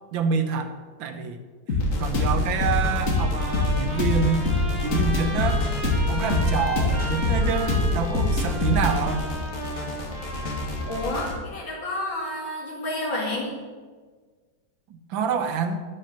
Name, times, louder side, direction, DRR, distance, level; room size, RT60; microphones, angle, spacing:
voice 1, 0.1-1.4 1.7-5.7 6.1-9.3 15.1-15.8, right 5 dB, 90° right, 7 dB, 1.7 m, -27 dB
sound 1, 1.7-11.3, left 2 dB, 45° left, 1.8 m, -25 dB
Trumpet, 2.8-11.4, equal, 30° right, 2.8 m, -36 dB
voice 2, 10.8-13.5, left 1 dB, 75° left, -3 dB, 3.2 m, -30 dB
9.9 x 6.4 x 5.8 m, 1.4 s
omnidirectional pair, 2.1 m